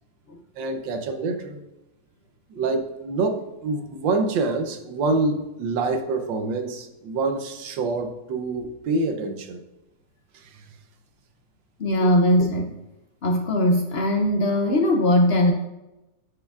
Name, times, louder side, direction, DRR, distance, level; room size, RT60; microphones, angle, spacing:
voice 1, 0.6-1.6 2.5-9.6, right 3 dB, 85° right, 6 dB, 1.5 m, -26 dB
voice 2, 11.8-12.8 13.2-15.5, left 1 dB, 75° left, 3 dB, 0.5 m, -20 dB
9.6 x 6.3 x 2.4 m, 0.96 s
omnidirectional pair, 2.0 m